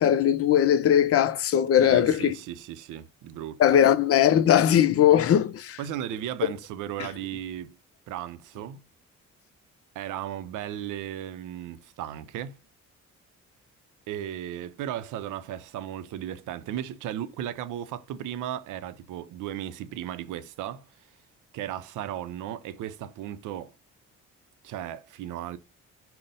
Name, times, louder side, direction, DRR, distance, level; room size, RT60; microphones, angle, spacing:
voice 1, 0.0-2.4 3.6-5.8, left 10 dB, 50° left, 0.5 m, -20 dB
voice 2, 1.8-3.8 5.8-7.7 8.1-8.8 10.0-12.6 14.1-20.8 21.5-23.7 24.6-25.6, right 11 dB, 85° right, 0.5 m, -35 dB
5.3 x 2.1 x 4.0 m
cardioid pair, 90°, 30 cm